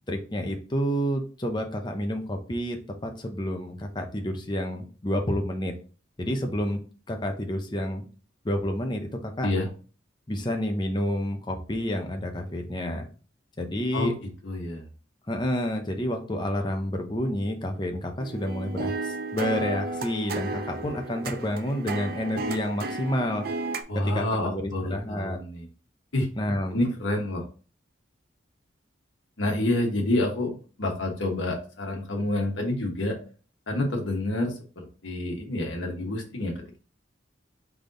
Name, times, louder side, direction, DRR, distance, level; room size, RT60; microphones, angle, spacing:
voice 1, 0.1-2.8 3.0-5.7 6.2-6.8 7.1-8.0 8.4-9.5 10.3-13.1 13.6-14.1 15.3-23.5 23.9-25.4 26.4-26.8, equal, 25° left, 3 dB, 0.7 m, -29 dB
voice 2, 14.4-14.8 23.9-25.7 26.1-26.3 26.7-27.4 29.4-33.2 33.7-36.8, left 1 dB, 90° left, 1 dB, 1.2 m, -28 dB
sound 1, 18.2-23.8, right 2 dB, 50° right, 0.5 m, -33 dB
4.0 x 3.5 x 3.8 m, 0.38 s
head